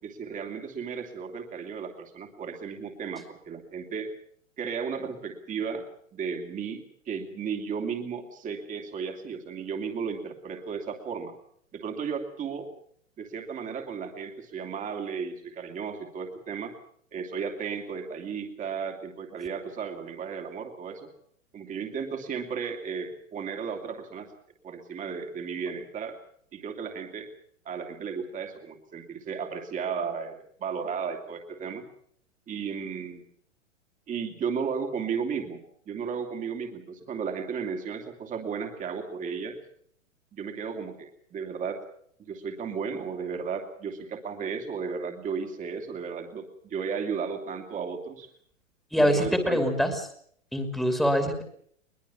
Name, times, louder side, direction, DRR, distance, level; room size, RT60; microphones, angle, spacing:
voice 1, 0.0-4.1 4.6-5.8 6.1-11.3 11.7-12.7 13.2-16.7 17.1-21.1 21.5-24.3 24.6-26.2 26.5-27.3 27.6-31.8 32.5-33.2 34.1-39.6 40.3-41.8 42.2-48.3 48.9-49.6, right 6 dB, 20° right, 4 dB, 2.8 m, -34 dB
voice 2, 48.9-49.9 50.5-51.4, equal, ahead, 6 dB, 2.8 m, -24 dB
22.0 x 21.5 x 7.1 m, 0.64 s
figure-of-eight pair, 110°, 38 cm